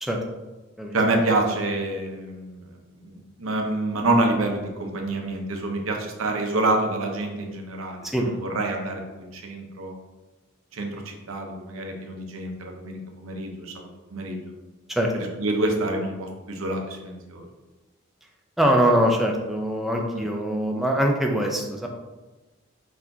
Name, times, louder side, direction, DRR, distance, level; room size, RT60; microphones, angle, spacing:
voice 1, 0.9-2.7 3.0-9.9 10.7-14.4 15.1-17.4 20.1-20.2, right 2 dB, 90° right, 2 dB, 0.8 m, -27 dB
voice 2, 18.6-21.9, equal, ahead, 0 dB, 0.5 m, -23 dB
4.4 x 4.4 x 2.7 m, 1.1 s
head